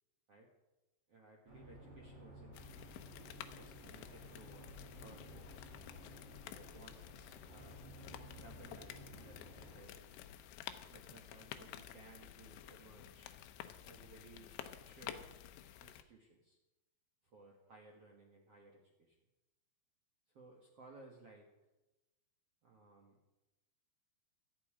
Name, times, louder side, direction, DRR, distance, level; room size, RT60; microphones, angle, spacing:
voice 1, 1.1-2.7 3.6-5.7 6.5-7.9 8.3-10.2 10.9-13.3 13.8-15.3 15.8-16.6 17.2-19.2 20.3-21.5 22.6-23.2, right 2 dB, 65° right, -1 dB, 1.4 m, -60 dB
sound 1, 1.5-9.8, equal, 35° right, 5.4 m, -55 dB
sound 2, 2.5-16.0, left 11 dB, 80° left, 3.1 m, -52 dB
18.0 x 13.0 x 4.9 m, 1.0 s
omnidirectional pair, 5.5 m